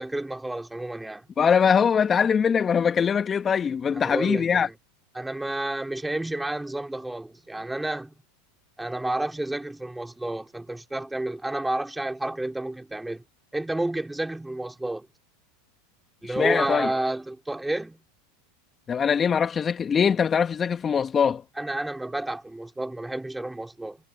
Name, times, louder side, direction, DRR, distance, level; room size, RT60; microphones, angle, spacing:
voice 1, 0.0-1.3 4.0-4.7 5.1-8.1 8.8-13.2 13.5-15.1 16.2-18.0 21.6-24.0, right 1 dB, 5° right, 4.0 m, -30 dB
voice 2, 1.4-4.7 16.3-16.9 18.9-21.4, left 7 dB, 25° left, 1.9 m, -22 dB
hypercardioid pair, 95°, 0 cm